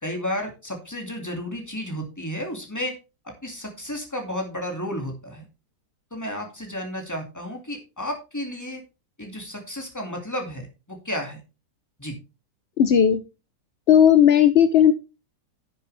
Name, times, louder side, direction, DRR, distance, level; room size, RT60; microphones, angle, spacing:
voice 1, 0.0-2.9 3.2-5.4 6.1-8.8 9.2-11.4 12.0-12.1, left 1 dB, 10° left, 2 dB, 2.4 m, -32 dB
voice 2, 12.8-13.2 13.9-14.9, left 9 dB, 65° left, 11 dB, 0.6 m, -15 dB
11.0 x 7.7 x 3.4 m, 0.29 s
omnidirectional pair, 1.9 m